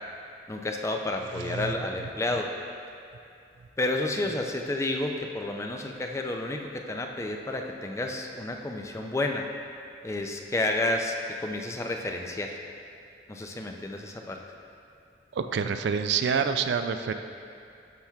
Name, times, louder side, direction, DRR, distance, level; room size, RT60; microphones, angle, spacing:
voice 1, 0.5-2.5 3.8-9.5 10.0-12.6 13.3-14.4, left 2 dB, 15° left, 2 dB, 0.3 m, -30 dB
voice 2, 1.4-1.7 15.3-17.1, right 6 dB, 65° right, 8 dB, 0.3 m, -27 dB
12.0 x 5.8 x 2.3 m, 2.5 s
head